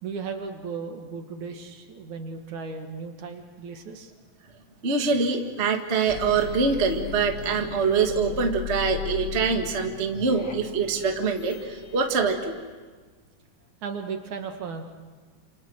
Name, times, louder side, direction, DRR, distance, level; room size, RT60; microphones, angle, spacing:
voice 1, 0.0-4.1 13.8-14.8, right 5 dB, 60° right, 5 dB, 3.1 m, -35 dB
voice 2, 4.8-12.5, right 5 dB, 30° right, 3 dB, 1.4 m, -24 dB
sound 1, 6.1-12.6, left 8 dB, 40° left, 2.9 m, -37 dB
29.0 x 28.0 x 6.4 m, 1.4 s
omnidirectional pair, 3.9 m